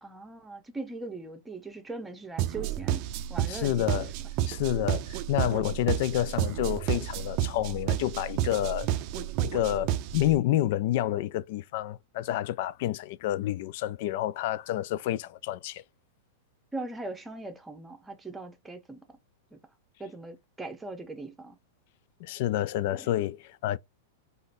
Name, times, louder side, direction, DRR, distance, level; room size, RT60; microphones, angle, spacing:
voice 1, 0.0-3.0 3.3-3.8 5.4-5.8 16.7-19.0 19.5-19.6 20.0-21.6 23.0-23.1, right 3 dB, 10° right, 0.8 m, -40 dB
sound 1, 2.4-10.4, right 12 dB, 45° right, 0.4 m, -31 dB
voice 2, 3.5-4.1 4.5-8.9 9.2-15.8 22.2-23.8, left 13 dB, 60° left, 0.3 m, -29 dB
3.7 x 2.6 x 2.6 m
hypercardioid pair, 130°, 0 cm